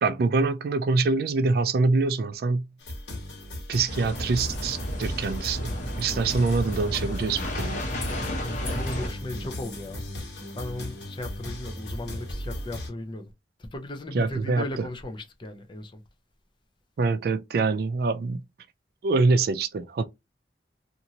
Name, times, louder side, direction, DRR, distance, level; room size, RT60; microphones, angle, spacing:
voice 1, 0.0-2.7 3.7-5.7 6.0-7.8 14.1-14.9 17.0-18.4 19.0-20.1, right 3 dB, 60° right, 0.3 m, -25 dB
sound 1, 2.8-12.9, left 1 dB, 90° left, 1.2 m, -37 dB
sound 2, 3.9-9.1, equal, 45° left, 1.0 m, -32 dB
voice 2, 8.4-10.0 10.5-13.3 13.6-16.0, left 1 dB, 25° left, 0.5 m, -36 dB
2.9 x 2.5 x 2.7 m
head